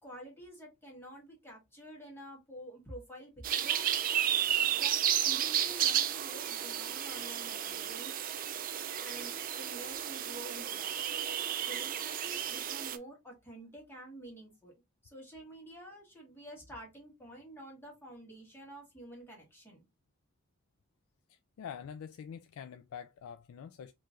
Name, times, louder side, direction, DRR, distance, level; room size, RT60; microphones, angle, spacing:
voice 1, 0.0-3.9 4.6-8.2 9.0-14.7 15.0-19.8, right 1 dB, 10° left, 1.8 m, -49 dB
sound 1, 3.4-13.0, right 10 dB, 40° right, 0.4 m, -32 dB
voice 2, 21.3-23.9, left 7 dB, 90° left, 0.3 m, -46 dB
4.5 x 3.0 x 2.5 m
head